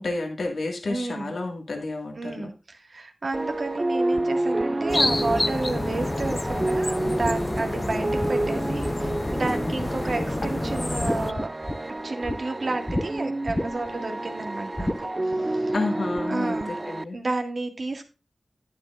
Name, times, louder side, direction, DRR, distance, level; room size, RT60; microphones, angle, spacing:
voice 1, 0.0-2.5 15.7-17.2, left 2 dB, 75° left, 2 dB, 1.8 m, -30 dB
voice 2, 0.9-1.3 2.2-15.7 16.3-16.7 17.1-18.1, right 3 dB, 60° right, 4 dB, 1.8 m, -31 dB
sound 1, 3.3-17.0, right 2 dB, 30° right, 0.4 m, -29 dB
sound 2, 4.9-11.3, left 2 dB, 35° left, 0.5 m, -28 dB
sound 3, 6.2-9.5 9.8-10.4 10.7-12.4 12.9-13.1 13.5-14.0 14.8-15.0, left 1 dB, 20° left, 0.9 m, -32 dB
10.5 x 9.7 x 2.5 m, 0.30 s
cardioid pair, 40°, 0 cm